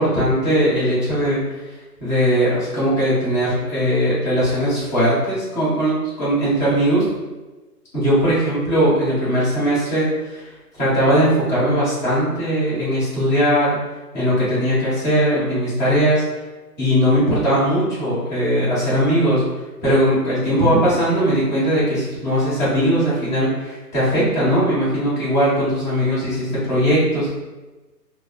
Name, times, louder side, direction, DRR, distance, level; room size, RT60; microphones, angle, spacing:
voice 1, 0.0-1.4 2.0-7.0 7.9-10.5 10.8-13.8 14.1-16.2 16.8-19.4 19.8-27.3, equal, 25° left, -11 dB, 1.4 m, -19 dB
3.4 x 2.2 x 2.3 m, 1.2 s
hypercardioid pair, 155°, 49 cm